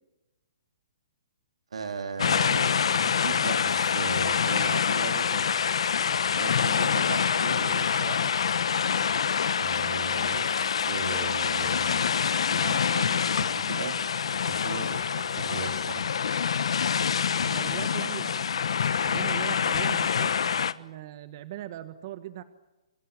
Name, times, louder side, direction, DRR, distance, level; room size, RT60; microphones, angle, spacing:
voice 1, 1.7-5.5 6.3-8.3 9.5-12.1 12.5-14.0 14.4-16.1, right 5 dB, 85° right, 5 dB, 3.8 m, -37 dB
sound 1, 2.2-20.7, left 7 dB, 75° left, 1.2 m, -26 dB
voice 2, 17.5-20.3 20.7-22.4, right 13 dB, 40° right, 11 dB, 1.4 m, -40 dB
27.0 x 25.0 x 7.4 m, 1.1 s
hypercardioid pair, 160°, 3 cm